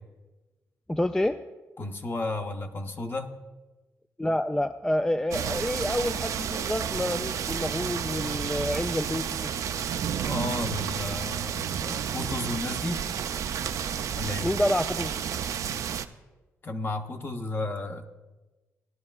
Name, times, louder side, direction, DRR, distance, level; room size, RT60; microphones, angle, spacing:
voice 1, 0.9-1.4 4.2-9.5 14.4-15.1, left 1 dB, 10° left, 9 dB, 0.3 m, -28 dB
voice 2, 1.8-3.3 10.2-13.1 14.2-14.5 16.6-18.0, left 2 dB, 40° left, 6 dB, 0.9 m, -33 dB
sound 1, 5.3-16.1, right 8 dB, 75° right, 0.4 m, -31 dB
17.0 x 10.5 x 2.4 m, 1.2 s
cardioid pair, 80°, 6 cm